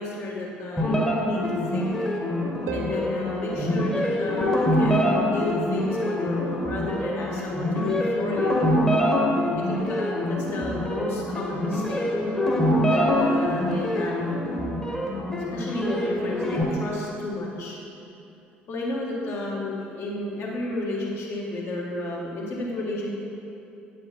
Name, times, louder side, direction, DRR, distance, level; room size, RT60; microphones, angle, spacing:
voice 1, 0.0-2.1 2.7-8.6 9.6-12.0 12.9-14.3 15.5-17.8 18.7-23.1, left 2 dB, 45° left, -3 dB, 1.6 m, -32 dB
sound 1, 0.8-16.6, left 1 dB, 10° left, 1.3 m, -25 dB
Harp, 2.7-5.2 8.7-8.8, left 1 dB, 65° right, 0.7 m, -36 dB
9.1 x 5.3 x 4.2 m, 2.8 s
figure-of-eight pair, 55°, 6 cm